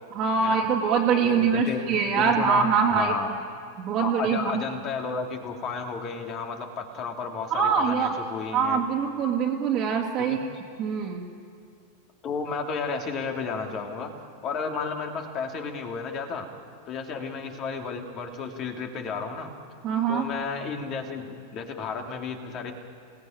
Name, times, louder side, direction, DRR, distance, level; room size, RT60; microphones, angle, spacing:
voice 1, 0.1-3.1 3.8-4.6 7.5-8.1 8.5-10.4 10.8-11.3 19.8-20.3, right 6 dB, 30° right, -4 dB, 2.4 m, -24 dB
voice 2, 1.2-1.8 2.2-3.3 4.0-8.8 10.3-10.4 12.2-14.1 14.4-16.5 16.9-19.5 20.1-22.7, left 5 dB, 35° left, 4 dB, 2.8 m, -32 dB
27.5 x 18.5 x 8.9 m, 2.4 s
figure-of-eight pair, 90°, 0 cm